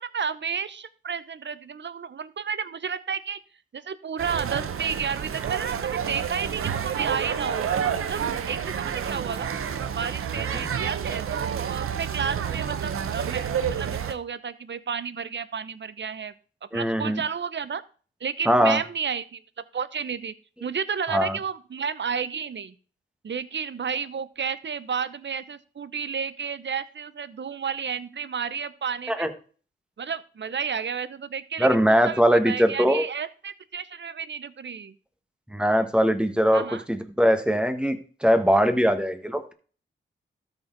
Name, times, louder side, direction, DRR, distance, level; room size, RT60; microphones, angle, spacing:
voice 1, 0.0-3.4 3.7-7.7 8.0-9.5 10.0-16.3 16.7-17.8 18.2-19.4 19.7-20.3 20.6-22.7 23.2-29.3 30.0-31.7 32.0-34.9 36.5-36.8, right 6 dB, 60° right, 15 dB, 0.8 m, -32 dB
sound 1, 4.2-14.1, right 8 dB, 90° right, 0.7 m, -29 dB
voice 2, 16.7-17.2 18.4-18.8 21.1-21.4 29.1-29.3 31.6-33.0 35.5-39.5, equal, 5° right, 6 dB, 1.6 m, -21 dB
13.0 x 4.4 x 3.9 m, 0.40 s
cardioid pair, 50°, 21 cm